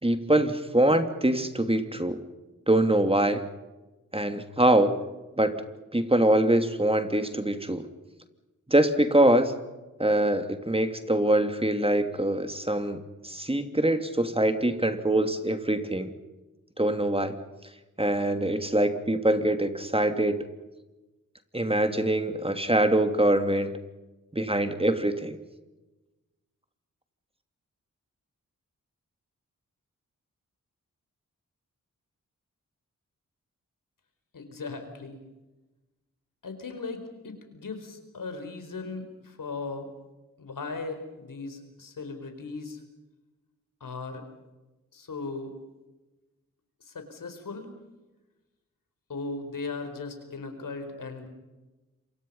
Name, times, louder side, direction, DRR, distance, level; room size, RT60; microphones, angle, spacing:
voice 1, 0.0-2.2 2.7-3.4 4.1-5.0 5.4-5.5 5.9-7.8 8.7-9.5 10.0-16.1 16.8-17.3 18.0-20.4 21.5-23.7 24.3-25.4, right 1 dB, 15° right, 8 dB, 2.8 m, -24 dB
voice 2, 34.3-35.2 36.4-39.9 40.4-42.8 43.8-44.2 44.9-45.5 46.9-47.7 49.1-51.3, left 3 dB, 75° left, 7 dB, 4.6 m, -37 dB
27.5 x 24.0 x 5.6 m, 1.1 s
cardioid pair, 45°, 33 cm